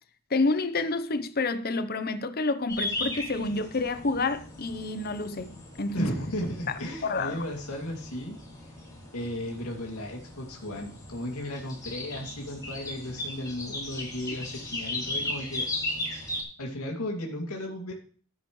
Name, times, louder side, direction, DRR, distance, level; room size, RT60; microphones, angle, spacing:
voice 1, 0.3-6.1 7.0-7.5, left 3 dB, 45° left, 0.8 m, -29 dB
sound 1, 2.7-16.4, left 2 dB, 15° left, 3.4 m, -37 dB
voice 2, 5.9-8.4 9.1-15.7 16.6-17.9, left 1 dB, 80° left, 2.5 m, -35 dB
13.5 x 9.0 x 3.2 m
head